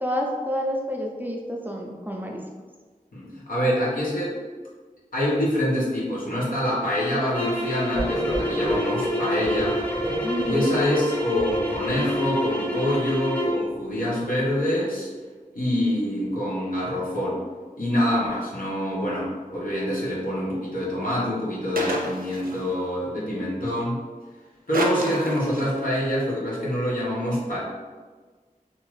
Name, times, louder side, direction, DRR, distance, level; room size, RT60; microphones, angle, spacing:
voice 1, 0.0-2.4 8.7-8.8 10.2-10.8 23.1-23.5, equal, 15° right, -1 dB, 0.4 m, -29 dB
voice 2, 3.1-4.4 5.1-9.8 10.5-15.1 15.5-17.4 17.8-23.9 24.7-27.6, equal, 75° left, -7 dB, 1.0 m, -25 dB
sound 1, 7.3-13.6, left 1 dB, 10° left, 0.7 m, -29 dB
sound 2, 8.0-12.4, right 1 dB, 35° left, 1.1 m, -30 dB
sound 3, 21.8-22.7 24.7-25.9, right 1 dB, 85° right, 0.4 m, -30 dB
2.7 x 2.5 x 3.0 m, 1.4 s
wide cardioid pair, 55°, 15 cm